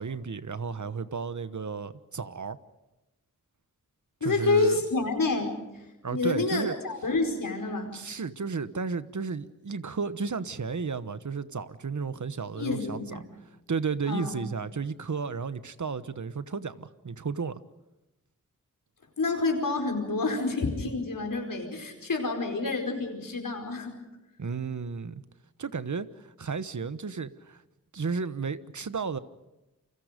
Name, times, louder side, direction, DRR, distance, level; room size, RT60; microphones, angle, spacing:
voice 1, 0.0-2.6 4.2-4.8 6.0-6.7 7.9-13.2 13.7-17.6 24.4-25.2 25.6-27.6 27.9-29.2, right 5 dB, 65° right, 1.1 m, -33 dB
voice 2, 4.2-5.8 6.1-8.0 12.5-13.3 14.1-14.3 19.2-24.0, left 3 dB, 85° left, 4.9 m, -28 dB
29.5 x 24.0 x 5.2 m
wide cardioid pair, 60°, 32 cm